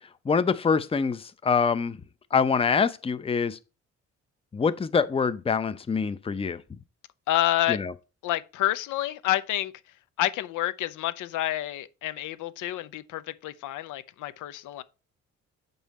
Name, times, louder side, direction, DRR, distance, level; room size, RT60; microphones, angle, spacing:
voice 1, 0.3-2.0 2.3-3.6 4.5-6.6 7.7-7.9, left 5 dB, 20° left, 0.5 m, -25 dB
voice 2, 7.3-7.8 8.2-9.7 10.2-14.8, left 14 dB, 85° left, 0.7 m, -28 dB
7.4 x 5.4 x 4.1 m
cardioid pair, 90°, 30 cm